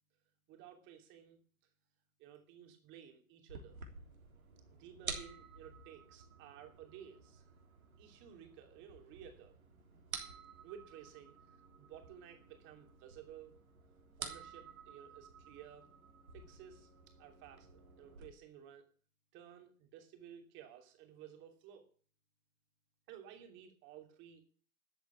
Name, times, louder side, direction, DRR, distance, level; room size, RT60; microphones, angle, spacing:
voice 1, 0.5-1.4 2.2-3.8 4.7-7.4 8.0-9.6 10.6-13.6 14.2-15.9 16.3-18.9 19.3-21.9 23.1-24.4, right 9 dB, 25° right, 5 dB, 3.0 m, -55 dB
sound 1, 3.5-18.3, right 5 dB, 75° right, 3.5 m, -51 dB
13.5 x 8.1 x 7.3 m, 0.41 s
figure-of-eight pair, 125°, 43 cm